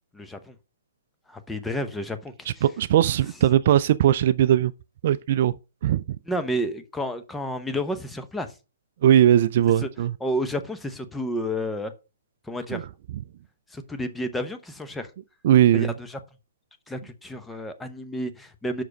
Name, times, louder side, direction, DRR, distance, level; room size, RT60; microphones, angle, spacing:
voice 1, 0.1-0.5 1.3-2.6 6.3-8.5 9.8-9.9 10.2-11.9 12.5-12.9 13.7-15.1 15.7-16.2 16.9-18.8, equal, 5° left, 0.8 m, -31 dB
voice 2, 2.5-4.7 5.0-5.6 5.8-6.0 9.0-10.1 12.7-12.8 15.4-15.9, right 11 dB, 50° right, 0.3 m, -19 dB
6.1 x 4.8 x 5.1 m
hypercardioid pair, 140°, 0 cm